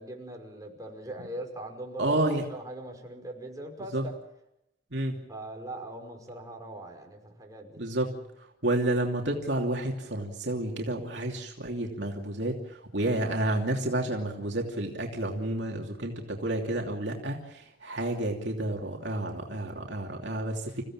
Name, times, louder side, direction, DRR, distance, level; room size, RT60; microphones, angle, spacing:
voice 1, 0.0-4.1 5.3-7.8, right 1 dB, 20° right, 1 dB, 5.6 m, -41 dB
voice 2, 2.0-2.4 3.9-4.0 4.9-5.2 7.8-8.2 8.6-20.8, right 1 dB, 70° right, 1 dB, 2.9 m, -30 dB
28.5 x 16.0 x 7.5 m, 0.87 s
head